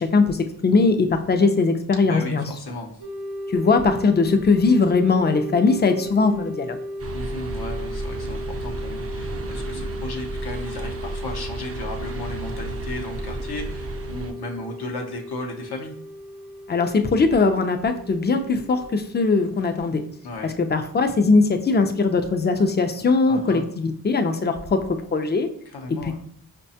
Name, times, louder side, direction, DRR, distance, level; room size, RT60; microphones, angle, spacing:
voice 1, 0.0-2.4 3.5-6.8 16.7-20.0 20.4-25.5 26.0-26.2, left 4 dB, 25° left, 7 dB, 0.4 m, -20 dB
voice 2, 2.1-2.9 7.1-15.9 20.2-20.5 23.3-23.6 25.7-26.2, left 2 dB, 70° left, 1 dB, 0.6 m, -35 dB
sound 1, 3.0-20.4, left 1 dB, 80° right, 0.7 m, -36 dB
sound 2, 7.0-14.3, right 2 dB, 35° right, 0.5 m, -33 dB
4.7 x 2.2 x 2.7 m, 0.62 s
cardioid pair, 45°, 39 cm